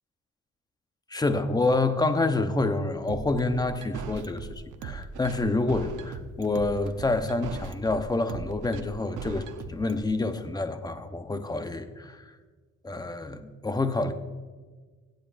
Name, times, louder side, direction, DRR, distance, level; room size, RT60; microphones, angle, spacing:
voice 1, 1.1-12.3 12.8-14.1, left 2 dB, 15° left, 9 dB, 0.8 m, -28 dB
sound 1, 3.1-10.0, right 6 dB, 85° right, 0.8 m, -39 dB
17.0 x 9.2 x 2.6 m, 1.4 s
cardioid pair, 90°, 30 cm